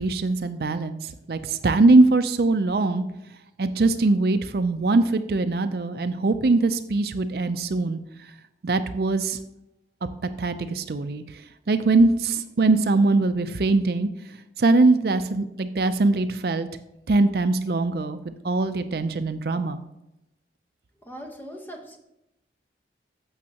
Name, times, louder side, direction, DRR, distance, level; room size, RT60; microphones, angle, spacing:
voice 1, 0.0-3.0 3.6-8.0 8.6-9.4 10.4-11.2 11.7-14.1 14.6-16.7 17.1-19.8, right 3 dB, 55° right, 9 dB, 0.5 m, -22 dB
voice 2, 21.0-22.0, equal, 10° left, 2 dB, 1.1 m, -40 dB
15.0 x 6.2 x 2.9 m, 0.88 s
head